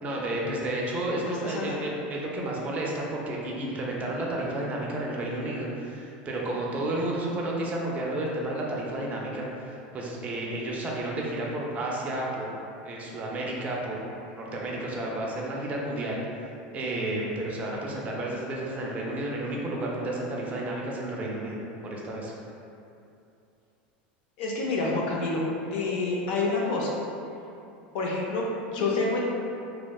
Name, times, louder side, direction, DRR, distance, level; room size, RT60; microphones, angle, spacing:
voice 1, 0.0-12.5 12.8-14.0 14.3-16.2 16.7-21.6 21.8-22.3, right 1 dB, 30° right, -3 dB, 0.4 m, -31 dB
voice 2, 1.2-1.8 24.4-25.4 25.7-26.9 27.9-29.2, left 3 dB, 75° left, -2 dB, 0.5 m, -28 dB
2.7 x 2.1 x 2.3 m, 2.7 s
supercardioid pair, 120°, 5 cm